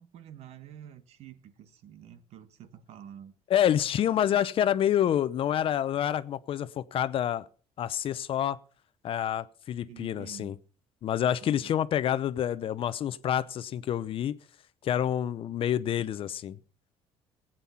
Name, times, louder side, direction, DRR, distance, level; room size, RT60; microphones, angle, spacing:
voice 1, 0.0-3.4 9.9-10.6 11.4-11.8, right 9 dB, 65° right, 1.5 m, -48 dB
voice 2, 3.5-7.4 7.8-8.6 9.0-10.5 11.0-14.4 14.8-16.6, left 10 dB, 50° left, 0.7 m, -28 dB
17.0 x 9.1 x 5.7 m
cardioid pair, 120°, 12 cm